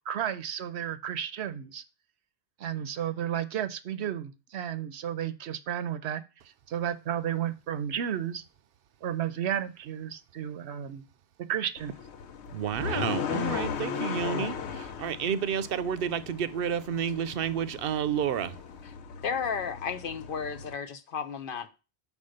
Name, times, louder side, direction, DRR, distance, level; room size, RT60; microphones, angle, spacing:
voice 1, 0.1-1.8 2.6-6.2 6.7-8.4 9.0-11.0 11.4-11.9, right 10 dB, 85° right, 1.0 m, -32 dB
sound 1, 11.8-20.7, left 7 dB, 90° left, 1.0 m, -37 dB
voice 2, 12.5-14.6 15.0-18.5, right 8 dB, 65° right, 0.7 m, -30 dB
voice 3, 19.2-21.7, left 6 dB, 60° left, 0.9 m, -33 dB
5.4 x 4.9 x 6.4 m
omnidirectional pair, 1.1 m